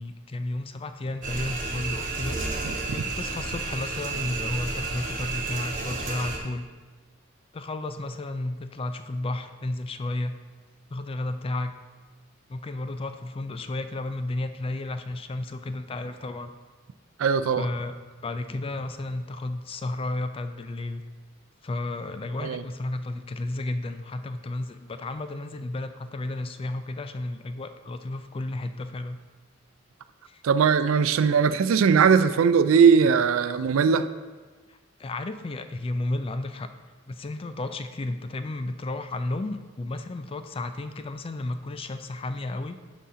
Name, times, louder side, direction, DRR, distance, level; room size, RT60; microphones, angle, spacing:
voice 1, 0.0-2.4 2.9-6.7 7.5-10.4 10.9-11.7 12.5-16.5 17.6-18.0 18.2-21.0 21.6-29.2 30.3-30.4 35.0-36.7 37.1-42.8, left 2 dB, 30° left, 9 dB, 0.4 m, -32 dB
sound 1, 1.2-6.4, right 3 dB, 40° right, 1.2 m, -31 dB
voice 2, 17.2-17.7 22.4-22.6 30.4-34.1, right 6 dB, 85° right, 12 dB, 0.4 m, -20 dB
11.0 x 4.2 x 3.7 m, 1.3 s
head